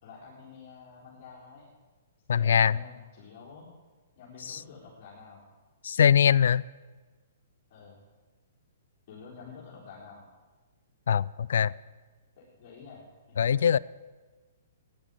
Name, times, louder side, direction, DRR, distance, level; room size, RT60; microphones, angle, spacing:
voice 1, 0.0-1.7 2.3-3.7 4.2-5.4 7.7-8.0 9.1-10.3 12.4-13.6, left 5 dB, 45° left, -6 dB, 4.2 m, -49 dB
voice 2, 2.3-2.8 4.5-4.6 5.8-6.6 11.1-11.7 13.4-13.8, left 8 dB, 70° left, 22 dB, 0.4 m, -22 dB
13.5 x 10.5 x 8.2 m, 1.3 s
hypercardioid pair, 130°, 0 cm